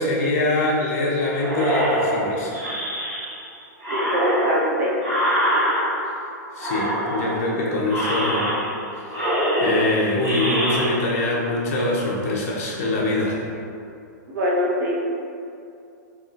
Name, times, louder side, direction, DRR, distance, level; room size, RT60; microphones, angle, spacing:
voice 1, 0.0-2.5 6.6-8.5 9.6-13.4, left 2 dB, 50° left, -4 dB, 0.7 m, -23 dB
sound 1, 1.4-3.5 3.8-6.2 6.6-7.5 7.9-8.8 9.1-10.9, equal, 20° right, 1.0 m, -24 dB
voice 2, 3.9-4.9 14.3-14.9, equal, 80° right, -4 dB, 0.8 m, -23 dB
3.5 x 2.4 x 2.4 m, 2.5 s
supercardioid pair, 170°, 10 cm